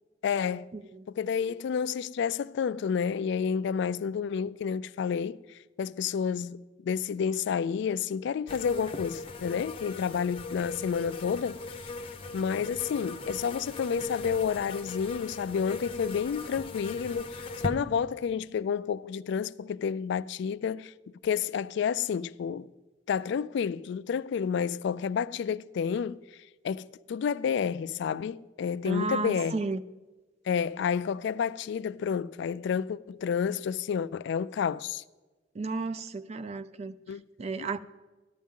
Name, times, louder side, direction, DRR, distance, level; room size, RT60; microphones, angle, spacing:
voice 1, 0.2-0.7 1.1-11.6 12.3-20.9 21.2-22.7 23.1-26.2 26.6-29.6 30.5-35.0 37.1-37.2 37.6-37.7, left 7 dB, 65° left, 0.3 m, -30 dB
sound 1, 8.5-17.7, left 3 dB, 30° left, 0.7 m, -39 dB
voice 2, 28.8-29.8 35.6-36.9 37.4-37.8, right 3 dB, 35° right, 0.4 m, -32 dB
14.0 x 11.5 x 3.7 m
head